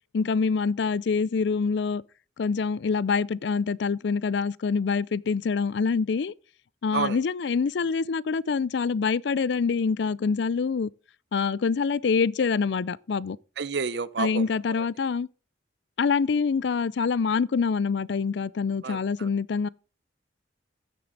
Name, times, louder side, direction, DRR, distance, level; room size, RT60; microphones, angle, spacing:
voice 1, 0.1-2.0 2.4-6.3 6.8-10.9 11.3-13.4 14.2-15.3 16.0-19.7, left 5 dB, 65° left, 0.4 m, -25 dB
voice 2, 13.6-14.4 18.8-19.3, right 5 dB, 65° right, 0.6 m, -29 dB
15.0 x 6.8 x 3.9 m
head